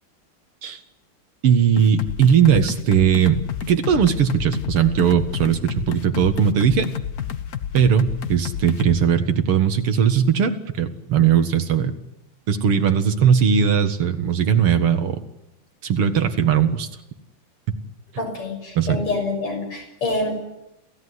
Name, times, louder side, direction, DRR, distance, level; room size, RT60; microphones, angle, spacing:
voice 1, 1.4-3.4 3.7-6.9 7.7-10.5 10.8-11.9 12.5-15.2 15.8-16.9 18.8-19.0, right 8 dB, 90° right, 8 dB, 2.7 m, -18 dB
sound 1, 1.8-9.0, left 8 dB, 50° left, 1.3 m, -30 dB
voice 2, 18.2-20.3, left 2 dB, 90° left, 3 dB, 7.6 m, -26 dB
27.5 x 16.5 x 9.7 m, 0.90 s
omnidirectional pair, 2.4 m